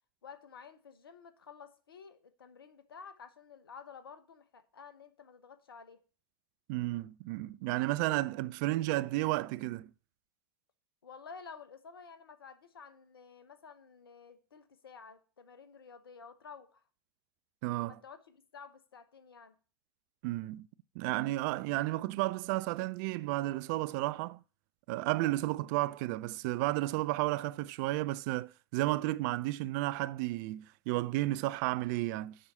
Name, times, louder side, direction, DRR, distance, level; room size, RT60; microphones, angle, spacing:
voice 1, 0.2-6.0 11.0-16.8 17.9-19.5, left 6 dB, 80° left, 1.1 m, -52 dB
voice 2, 6.7-9.9 17.6-18.0 20.2-20.7 21.0-24.4 24.9-32.4, right 18 dB, 50° right, 0.4 m, -32 dB
7.4 x 5.6 x 7.5 m
figure-of-eight pair, 85°, 12 cm